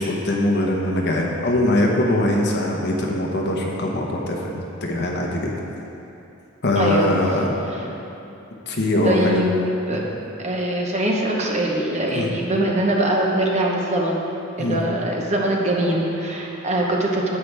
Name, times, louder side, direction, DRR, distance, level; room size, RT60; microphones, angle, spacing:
voice 1, 0.0-5.5 6.6-7.6 8.7-9.4 9.9-10.0 12.1-12.3 14.6-14.8, left 1 dB, 55° left, 0 dB, 1.1 m, -22 dB
voice 2, 6.8-7.1 9.0-9.6 9.9-10.0 10.4-14.2 14.6-17.4, right 1 dB, 35° right, -1 dB, 1.0 m, -22 dB
9.9 x 8.0 x 3.4 m, 2.9 s
head